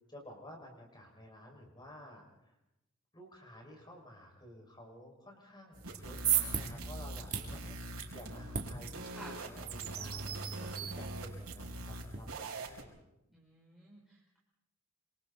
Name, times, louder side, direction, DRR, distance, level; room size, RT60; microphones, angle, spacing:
voice 1, 0.1-2.6 3.1-10.3 10.6-13.0, left 1 dB, 20° left, 1 dB, 6.1 m, -53 dB
sound 1, 5.7-12.8, right 3 dB, 85° right, 4.4 m, -43 dB
sound 2, 5.8-12.2, right 8 dB, 35° right, 3.2 m, -38 dB
voice 2, 8.2-9.3 13.3-14.4, right 2 dB, ahead, -5 dB, 4.7 m, -54 dB
27.5 x 27.0 x 4.3 m, 0.87 s
head